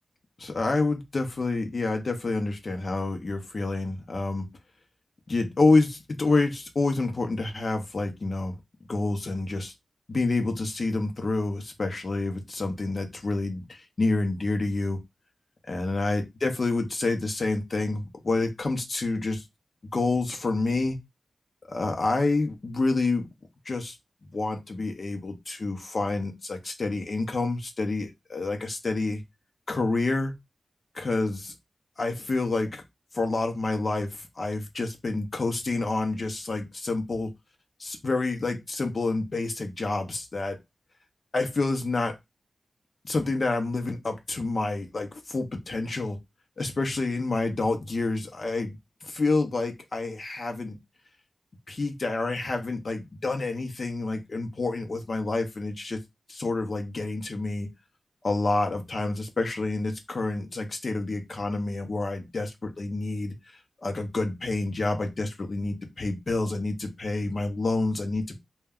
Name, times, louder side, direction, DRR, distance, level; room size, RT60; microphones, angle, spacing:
voice 1, 0.4-4.5 5.3-8.5 8.9-9.7 10.1-15.0 15.7-19.4 19.9-21.0 21.7-23.3 23.7-23.9 24.3-29.2 29.7-30.3 30.9-31.5 32.0-32.8 33.1-37.3 37.8-40.6 41.3-42.1 43.0-46.2 46.6-48.8 49.1-50.8 51.7-56.0 56.3-57.7 58.2-63.3 63.8-68.4, left 3 dB, 55° left, 4 dB, 0.6 m, -28 dB
2.2 x 2.1 x 3.5 m, 0.20 s
cardioid pair, 50°, 0 cm